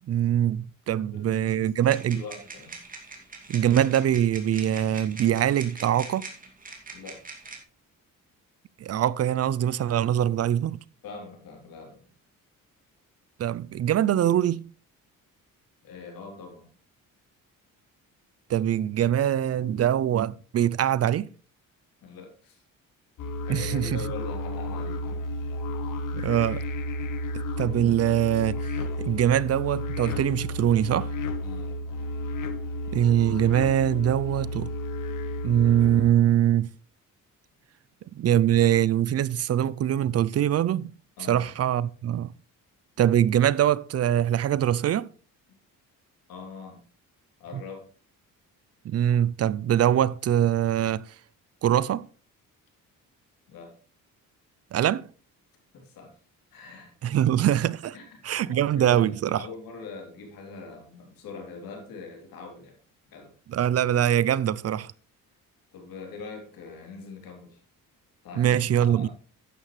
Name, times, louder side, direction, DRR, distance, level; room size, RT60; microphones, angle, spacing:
voice 1, 0.1-2.2 3.5-6.3 8.8-10.8 13.4-14.6 18.5-21.3 23.5-23.9 26.1-26.6 27.6-28.7 29.0-31.1 32.9-34.7 35.4-36.7 38.2-40.9 41.3-42.3 43.0-45.1 48.8-51.1 51.6-52.0 54.7-55.0 57.0-57.9 58.2-59.4 63.5-64.9 68.4-69.1, right 10 dB, 50° right, 0.5 m, -23 dB
voice 2, 1.1-2.8 6.9-7.2 11.0-12.1 15.8-16.7 22.0-22.6 23.4-25.2 31.4-31.8 41.2-41.4 46.3-46.8 47.4-47.8 53.5-53.7 55.7-56.2 56.5-56.9 57.9-62.8 63.1-63.3 65.7-67.6 68.2-69.1, left 4 dB, 85° left, 3.4 m, -42 dB
sound 1, 1.8-7.6, right 3 dB, 25° right, 2.5 m, -43 dB
sound 2, 23.2-36.1, left 1 dB, 65° left, 1.3 m, -32 dB
11.5 x 9.2 x 3.2 m
cardioid pair, 105°, 34 cm